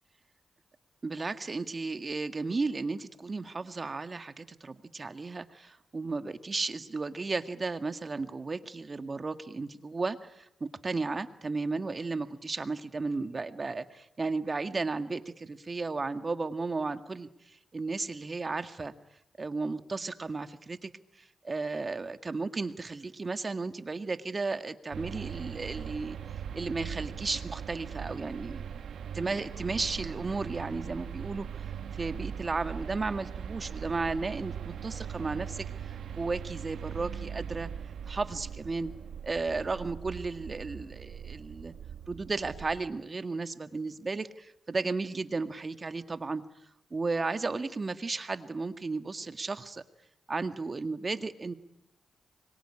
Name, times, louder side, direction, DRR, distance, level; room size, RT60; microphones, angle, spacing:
voice 1, 1.0-18.9 19.4-20.9 21.4-26.2 26.5-28.7 29.1-31.5 31.9-37.7 38.1-38.9 39.2-41.7 42.1-46.4 46.9-49.8 50.3-51.5, right 3 dB, 40° right, 9 dB, 1.9 m, -34 dB
sound 1, 24.9-42.9, right 8 dB, 85° right, 1.2 m, -40 dB
25.5 x 23.0 x 10.0 m, 0.83 s
cardioid pair, 65°, 0 cm